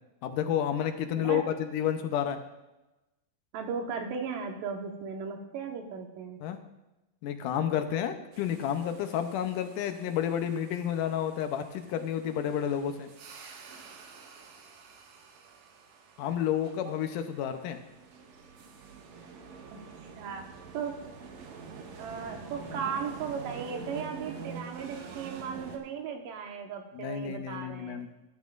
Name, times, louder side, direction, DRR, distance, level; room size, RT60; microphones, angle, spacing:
voice 1, 0.2-2.4 6.4-6.6 7.2-13.1 16.2-17.8 26.9-28.1, left 9 dB, 80° left, 8 dB, 2.3 m, -30 dB
voice 2, 3.5-6.4 19.7-19.8 20.1-20.4 20.7-21.0 22.0-28.1, right 6 dB, 85° right, 3 dB, 2.9 m, -36 dB
sound 1, 8.3-25.8, right 5 dB, 65° right, 2.1 m, -47 dB
13.0 x 12.5 x 2.5 m, 1.0 s
omnidirectional pair, 3.9 m